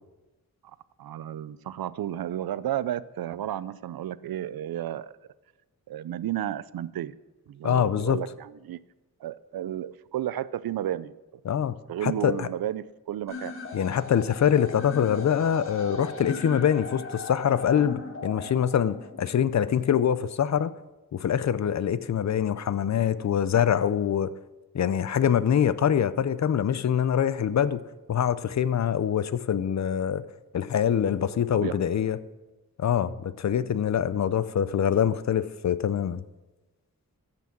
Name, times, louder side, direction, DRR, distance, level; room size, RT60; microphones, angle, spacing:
voice 1, 1.0-5.1 5.9-7.1 7.5-8.8 9.2-11.1 11.9-13.5 31.5-31.8, right 11 dB, 85° right, 17 dB, 0.5 m, -32 dB
voice 2, 7.6-8.2 11.4-11.8 12.0-12.5 13.7-20.7 21.1-24.3 24.7-27.8 28.1-30.2 30.5-32.2 32.8-36.2, left 9 dB, 50° left, 15 dB, 0.5 m, -24 dB
sound 1, 13.3-19.3, left 3 dB, 35° left, 1.6 m, -38 dB
13.5 x 5.9 x 6.0 m, 1.1 s
wide cardioid pair, 120°, 35 cm